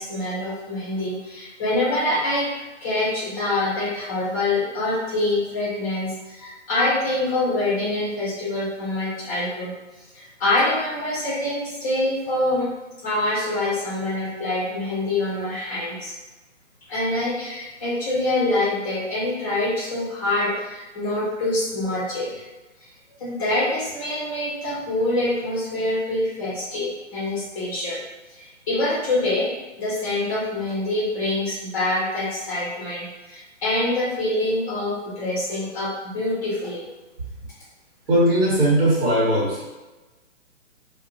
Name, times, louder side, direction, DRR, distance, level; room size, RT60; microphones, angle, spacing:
voice 1, 0.0-2.5 2.8-9.7 10.1-12.6 13.0-16.1 16.9-22.3 23.2-28.0 28.3-29.5 29.8-36.8, left 2 dB, 15° left, -7 dB, 0.6 m, -25 dB
voice 2, 38.1-39.7, right 1 dB, 50° right, -6 dB, 1.2 m, -19 dB
2.4 x 2.1 x 2.7 m, 1.1 s
figure-of-eight pair, 130°, 38 cm